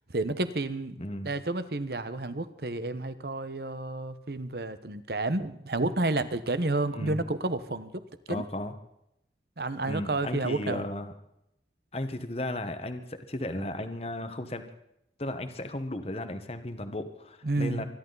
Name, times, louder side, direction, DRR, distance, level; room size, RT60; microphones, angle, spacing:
voice 1, 0.1-1.0 1.2-7.9 8.3-8.4 9.6-10.8 17.4-17.8, right 2 dB, 55° right, 12 dB, 1.1 m, -30 dB
voice 2, 1.0-1.3 6.9-7.3 8.3-8.7 9.8-11.1 11.9-14.6 15.2-17.8, left 1 dB, 35° left, 9 dB, 1.2 m, -35 dB
24.5 x 11.5 x 4.0 m, 0.81 s
head